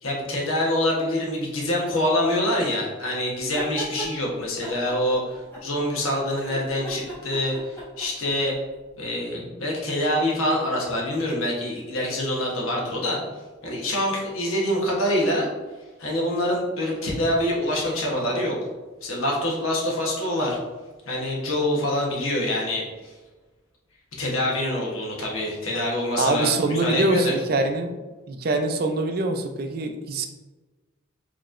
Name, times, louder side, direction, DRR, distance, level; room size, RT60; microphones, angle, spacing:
voice 1, 0.0-8.5 9.0-13.2 13.6-15.5 16.0-18.6 19.0-20.6 21.0-23.1 24.2-27.3, left 1 dB, 90° left, -2 dB, 1.0 m, -25 dB
sound 1, 3.4-4.1 4.6-6.0 6.3-8.5, right 2 dB, 10° left, 1.2 m, -37 dB
voice 2, 26.2-28.0 28.3-30.3, right 2 dB, 45° right, 6 dB, 0.4 m, -24 dB
4.7 x 3.0 x 2.4 m, 1.2 s
head